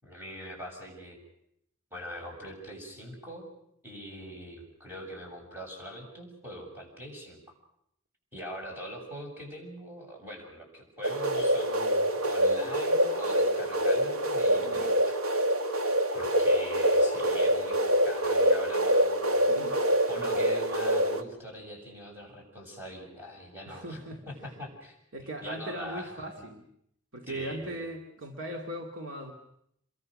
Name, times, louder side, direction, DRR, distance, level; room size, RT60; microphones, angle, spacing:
voice 1, 0.0-1.2 1.9-3.5 3.8-7.4 8.3-15.1 16.1-17.8 18.0-24.0 24.3-25.0 25.4-26.1 27.3-27.9, equal, 10° right, -1 dB, 7.0 m, -43 dB
sound 1, 11.0-21.2, equal, 90° right, 2.0 m, -25 dB
voice 2, 14.6-15.0 19.4-19.8 23.7-24.2 25.1-26.6 27.1-29.3, right 1 dB, 65° right, 2 dB, 2.3 m, -39 dB
27.5 x 22.5 x 6.4 m, 0.74 s
head